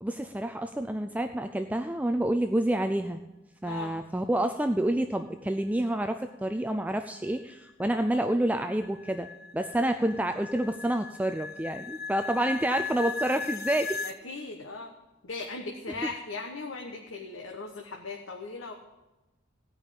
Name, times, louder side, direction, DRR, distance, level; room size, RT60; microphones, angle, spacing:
voice 1, 0.0-3.2 3.6-9.3 9.5-14.0, right 1 dB, 5° right, 8 dB, 0.4 m, -28 dB
voice 2, 3.6-3.9 14.0-14.9 15.2-18.7, left 3 dB, 75° left, 2 dB, 1.2 m, -38 dB
sound 1, 7.0-14.2, left 4 dB, 50° left, 0.6 m, -38 dB
16.0 x 5.4 x 8.8 m, 1.1 s
head